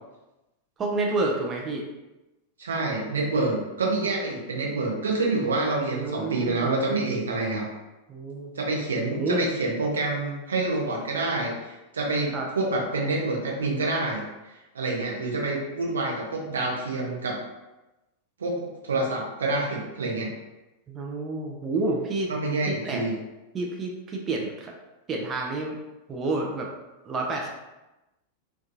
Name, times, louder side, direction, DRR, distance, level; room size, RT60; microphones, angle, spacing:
voice 1, 0.8-1.9 5.9-6.8 8.1-8.5 9.1-9.5 12.3-12.5 20.9-22.3 22.7-23.0 23.5-24.7 25.1-25.8 26.1-26.7 27.0-27.5, right 2 dB, 25° right, 0 dB, 0.4 m, -29 dB
voice 2, 2.6-7.7 8.6-14.2 14.7-17.4 18.4-20.3 22.3-23.1, right 2 dB, 70° right, -1 dB, 0.6 m, -27 dB
2.7 x 2.2 x 2.6 m, 1.0 s
figure-of-eight pair, 90°, 0 cm